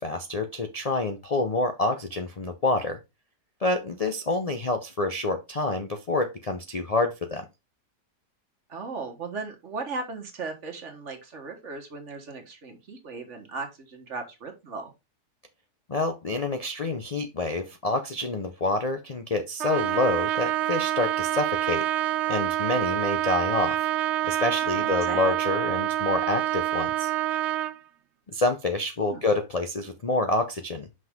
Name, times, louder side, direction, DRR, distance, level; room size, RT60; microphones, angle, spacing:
voice 1, 0.0-3.0 3.6-7.4 15.9-21.9 22.3-23.8 24.3-27.1 28.3-30.9, left 2 dB, 75° left, 6 dB, 0.3 m, -27 dB
voice 2, 8.7-14.9 24.7-25.3 29.1-29.2, right 4 dB, 50° right, 4 dB, 1.6 m, -37 dB
Trumpet, 19.6-27.8, right 13 dB, 75° right, 0.6 m, -27 dB
5.9 x 5.2 x 3.5 m, 0.24 s
omnidirectional pair, 1.7 m